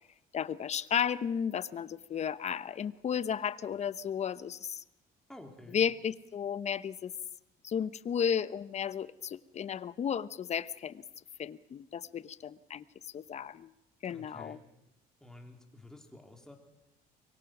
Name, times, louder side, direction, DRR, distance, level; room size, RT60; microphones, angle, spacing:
voice 1, 0.3-4.8 5.7-7.1 7.6-11.0 11.4-13.7 14.0-14.6, left 8 dB, 40° left, 16 dB, 0.9 m, -34 dB
voice 2, 5.3-5.8 14.1-14.6 15.2-16.6, left 1 dB, 5° left, 2 dB, 3.8 m, -51 dB
24.5 x 23.0 x 6.1 m, 0.94 s
cardioid pair, 110°, 17 cm